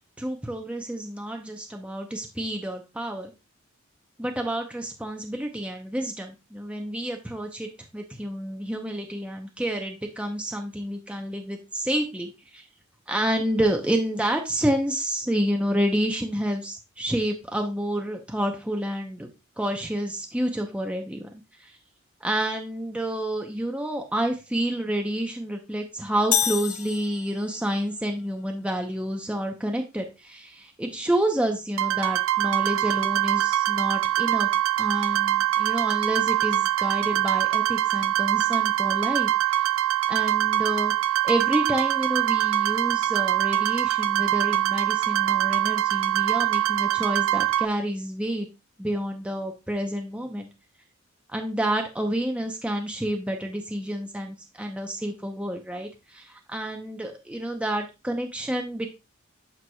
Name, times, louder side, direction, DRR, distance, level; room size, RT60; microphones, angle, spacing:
voice 1, 0.2-3.3 4.2-12.6 13.1-19.3 19.6-21.3 21.6-21.7 22.2-34.5 34.8-39.3 40.1-40.9 41.2-48.5 48.8-50.5 51.3-58.9, right 1 dB, 5° right, 2 dB, 0.7 m, -29 dB
sound 1, 26.3-27.7, left 10 dB, 85° left, 0.7 m, -27 dB
sound 2, 31.8-47.6, right 13 dB, 70° right, 0.4 m, -24 dB
8.9 x 4.7 x 2.3 m, 0.27 s
head